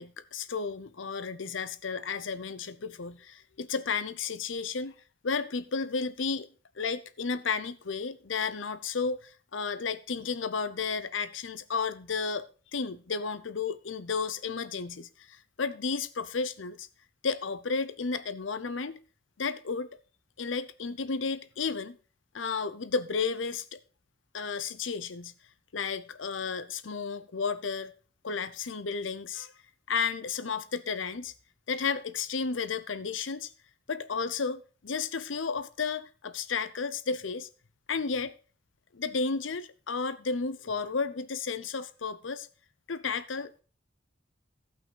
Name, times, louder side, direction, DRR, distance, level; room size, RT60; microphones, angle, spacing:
voice 1, 0.0-4.9 5.2-6.5 6.8-16.9 17.2-19.0 19.4-19.9 20.4-22.0 22.3-23.8 24.3-25.3 25.7-27.9 28.2-29.5 29.9-31.3 31.7-33.5 33.9-37.5 37.9-38.4 38.9-42.5 42.9-43.5, left 5 dB, 85° left, 0.7 m, -33 dB
15.5 x 5.7 x 4.7 m
head